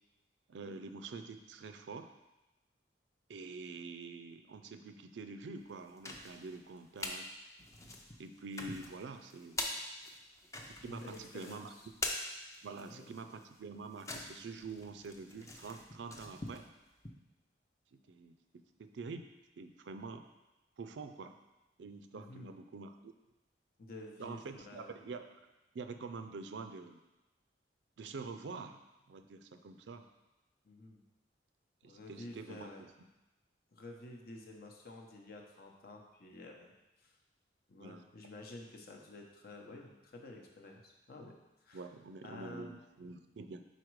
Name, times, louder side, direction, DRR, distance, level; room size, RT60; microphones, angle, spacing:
voice 1, 0.5-2.1 3.3-7.3 8.2-9.8 10.7-11.7 12.6-16.6 17.9-18.3 18.8-19.3 19.6-20.2 20.8-21.4 21.8-23.1 24.2-25.3 25.7-27.0 28.0-28.8 29.1-30.0 31.8-32.9 37.8-38.0 41.7-43.7, right 4 dB, 70° right, 8 dB, 0.4 m, -46 dB
sound 1, 5.7-7.2 7.6-17.1, left 2 dB, 15° left, 0.5 m, -44 dB
voice 2, 10.9-11.9 12.8-13.1 22.1-22.5 23.8-24.9 30.6-31.0 31.8-32.8 33.7-36.7 37.0-37.2 37.7-41.3 41.6-41.9 42.2-42.8, left 2 dB, 55° left, 1 dB, 0.8 m, -50 dB
5.0 x 4.1 x 4.7 m, 1.0 s
head